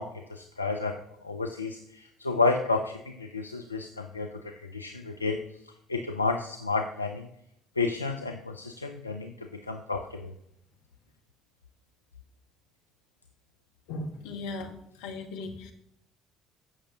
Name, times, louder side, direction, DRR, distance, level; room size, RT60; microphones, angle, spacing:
voice 1, 0.0-7.3 7.8-10.3, left 3 dB, 90° left, 4 dB, 0.4 m, -31 dB
voice 2, 13.9-14.7 15.0-15.7, left 2 dB, 70° left, 3 dB, 1.3 m, -37 dB
14.5 x 6.3 x 2.9 m, 0.78 s
figure-of-eight pair, 50°, 0 cm